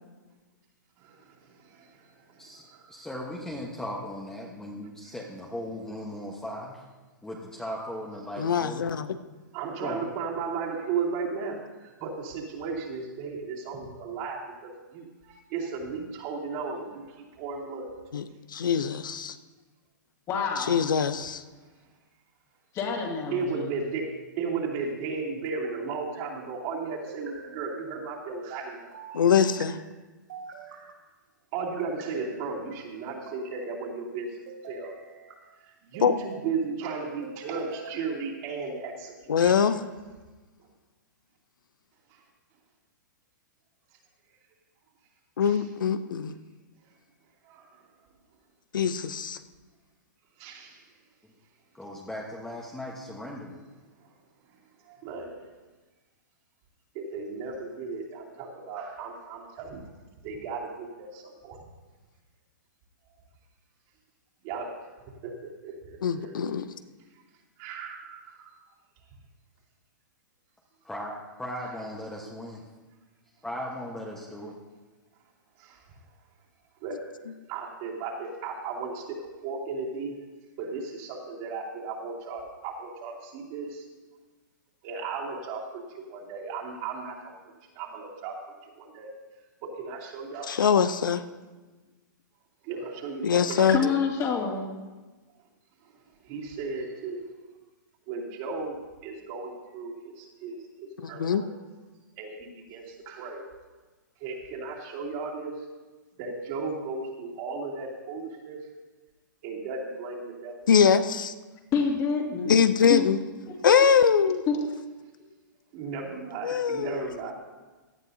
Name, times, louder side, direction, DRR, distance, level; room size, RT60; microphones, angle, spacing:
voice 1, 2.4-6.8 7.2-8.9 9.8-10.0 51.7-53.6 70.8-72.6 73.4-74.5, left 1 dB, 5° left, -2 dB, 1.3 m, -37 dB
voice 2, 8.4-9.1 18.1-18.2 18.5-19.4 20.7-21.4 29.1-29.8 36.0-36.1 39.3-39.8 45.4-46.4 48.7-49.4 66.0-66.7 90.5-91.2 93.2-93.8 101.0-101.4 110.7-111.3 112.5-113.2 113.6-114.4 116.4-117.0, left 7 dB, 80° left, 12 dB, 0.6 m, -22 dB
voice 3, 9.5-11.6 12.0-14.4 14.9-17.0 17.4-17.9 23.3-24.1 24.4-28.9 31.5-34.3 34.7-34.9 35.9-39.1 39.4-39.7 45.4-45.6 50.4-50.7 54.9-55.4 56.9-59.8 60.2-61.6 64.4-64.7 65.2-65.3 65.6-66.4 67.6-68.5 71.6-71.7 76.8-77.0 77.5-79.0 79.4-80.1 80.6-83.7 84.8-85.6 85.9-87.3 87.8-88.3 88.9-89.1 89.6-90.7 92.7-93.9 96.3-97.2 98.1-98.8 99.0-101.5 102.2-103.4 104.2-105.5 106.2-108.6 109.4-110.5 115.7-117.3, right 4 dB, 45° right, -3 dB, 2.8 m, -35 dB
voice 4, 20.3-20.8 22.7-23.4 93.7-94.7 111.7-112.6 112.9-113.0 113.5-113.8 114.5-114.7, left 6 dB, 30° left, -1 dB, 2.4 m, -27 dB
sound 1, 23.4-24.1 25.4-26.2 27.1-27.8 28.9-29.7 30.3-30.9 31.6-32.4 33.1-33.7 34.5-35.4 35.9-36.5 37.2-38.0, right 4 dB, 70° right, 3.8 m, -45 dB
17.0 x 11.5 x 2.8 m, 1.3 s
hypercardioid pair, 125°, 11 cm